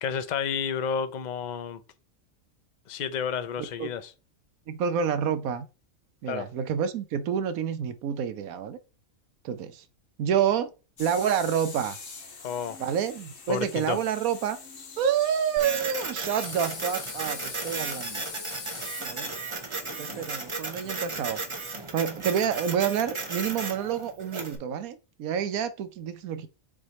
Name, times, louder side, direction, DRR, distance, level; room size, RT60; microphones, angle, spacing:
voice 1, 0.0-1.8 2.9-4.1 6.3-6.5 12.4-12.8 13.5-14.0, left 7 dB, 50° left, 0.5 m, -31 dB
voice 2, 3.6-3.9 4.7-5.7 6.2-8.8 9.4-9.8 10.2-10.7 11.0-12.0 12.8-14.6 15.0-18.3 19.0-19.3 20.0-21.4 21.9-26.5, right 8 dB, 85° right, 1.2 m, -28 dB
sound 1, 11.0-21.7, left 5 dB, 65° left, 1.6 m, -43 dB
Printer, 15.6-24.6, right 3 dB, 25° right, 0.8 m, -35 dB
7.0 x 3.4 x 4.1 m
omnidirectional pair, 1.4 m